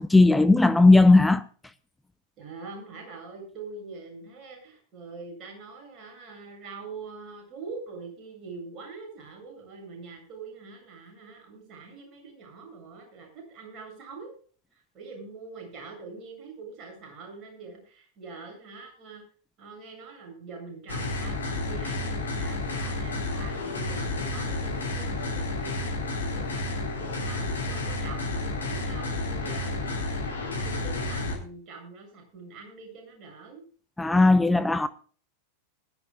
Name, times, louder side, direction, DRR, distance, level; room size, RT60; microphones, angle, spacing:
voice 1, 0.0-1.4 34.0-34.9, left 2 dB, 5° left, 0.7 m, -17 dB
voice 2, 2.4-14.3 14.7-19.2 19.6-33.6, right 4 dB, 35° right, 8.0 m, -44 dB
sound 1, 20.9-31.4, left 2 dB, 70° left, 3.9 m, -31 dB
21.0 x 12.5 x 2.4 m
figure-of-eight pair, 90°, 0 cm